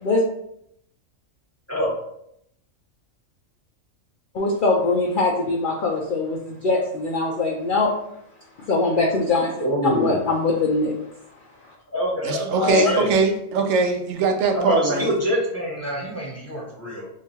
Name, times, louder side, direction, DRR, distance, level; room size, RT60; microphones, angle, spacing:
voice 1, 4.3-7.9 8.6-10.9 11.6-11.7 12.6-12.9, left 3 dB, 65° left, -1 dB, 0.5 m, -22 dB
voice 2, 9.6-10.2 11.9-13.1 14.5-17.1, equal, 15° left, -5 dB, 0.8 m, -25 dB
voice 3, 12.2-15.1, right 4 dB, 80° right, 4 dB, 1.0 m, -21 dB
2.9 x 2.3 x 4.2 m, 0.75 s
omnidirectional pair, 1.3 m